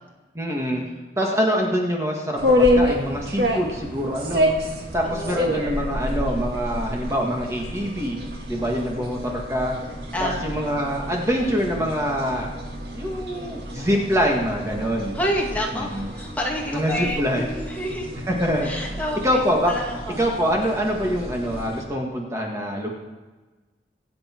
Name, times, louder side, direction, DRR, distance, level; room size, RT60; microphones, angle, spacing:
voice 1, 0.3-0.8 1.2-4.5 4.9-8.2 8.5-9.8 10.2-12.6 12.9-15.2 15.7-16.1 16.7-17.5 18.3-18.9 19.2-19.8 20.2-23.0, equal, 15° right, -1 dB, 1.8 m, -25 dB
sound 1, 2.4-21.9, left 1 dB, 60° right, 2.2 m, -28 dB
voice 2, 5.0-5.6 10.1-10.5 15.1-18.2 18.6-19.4 19.7-20.2, equal, 10° left, -2 dB, 2.0 m, -29 dB
25.0 x 8.5 x 4.5 m, 1.3 s
head